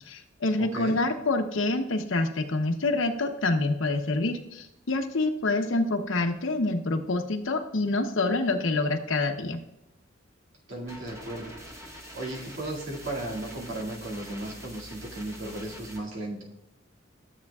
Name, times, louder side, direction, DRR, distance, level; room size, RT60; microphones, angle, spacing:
voice 1, 0.1-9.6, left 2 dB, 80° left, 6 dB, 0.9 m, -27 dB
voice 2, 0.6-1.0 10.7-11.5 12.1-16.4, right 1 dB, 85° right, -2 dB, 2.3 m, -35 dB
sound 1, 10.9-16.0, equal, 15° right, 1.1 m, -45 dB
13.0 x 7.7 x 2.4 m, 0.90 s
head